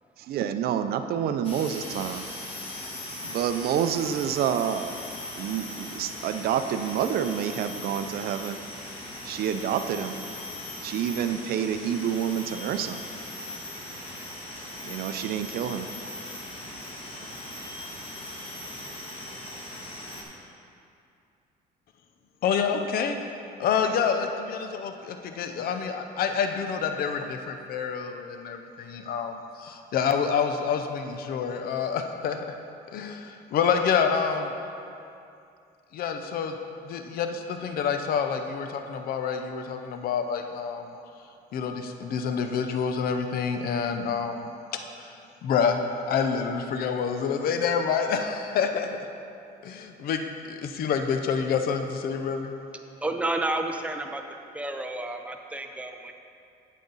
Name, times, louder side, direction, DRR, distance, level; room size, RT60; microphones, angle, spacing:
voice 1, 0.2-2.2 3.2-4.9 5.4-8.6 9.2-10.2 10.8-13.0 14.8-15.9, right 9 dB, 65° right, 10 dB, 0.5 m, -28 dB
sound 1, 1.4-20.2, left 1 dB, 35° left, 1.8 m, -39 dB
voice 2, 22.4-23.2 23.6-32.5 32.9-34.5 35.9-36.6 36.8-40.9 41.5-44.5 45.0-45.1 45.4-45.8 46.1-49.0 49.6-50.2 50.5-52.5, left 6 dB, 60° left, 6 dB, 0.6 m, -27 dB
voice 3, 53.0-54.2 54.5-56.1, right 2 dB, 10° right, 4 dB, 0.6 m, -30 dB
8.4 x 8.4 x 4.0 m, 2.6 s
cardioid pair, 110°, 17 cm